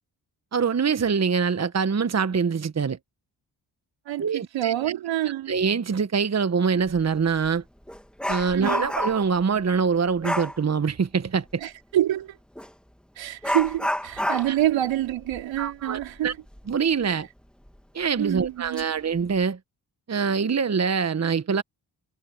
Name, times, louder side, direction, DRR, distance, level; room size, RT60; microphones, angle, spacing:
voice 1, 0.5-3.0 4.2-4.7 5.5-7.6 8.3-11.6 14.5-14.6 15.6-16.3 16.7-17.3 17.9-19.6 20.1-21.6, right 6 dB, 35° right, 1.2 m, -24 dB
voice 2, 4.1-5.5 8.5-8.9 11.6-12.4 13.2-16.3 17.1-17.2 18.2-18.8, right 13 dB, 90° right, 4.2 m, -27 dB
Dog, 6.9-7.0 7.4-9.4 10.2-10.6 12.5-12.7 13.4-16.7 17.0-17.1 17.7-17.8 18.4-18.8 19.2-19.4, equal, ahead, 2.3 m, -30 dB
supercardioid pair, 45°, 44 cm